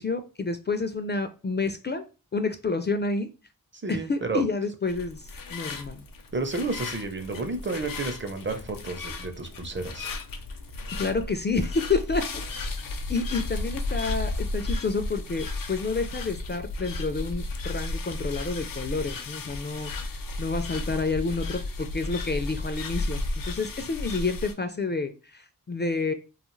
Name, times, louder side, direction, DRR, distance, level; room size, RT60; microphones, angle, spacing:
voice 1, 0.0-2.1 2.3-3.3 3.9-6.0 11.0-12.4 13.1-26.1, left 4 dB, 30° left, 8 dB, 0.4 m, -29 dB
voice 2, 3.7-4.4 6.3-10.1, right 3 dB, 35° right, 7 dB, 0.7 m, -31 dB
sound 1, 4.9-24.5, left 2 dB, 70° left, 0.6 m, -34 dB
2.4 x 2.4 x 3.1 m, 0.32 s
cardioid pair, 45°, 35 cm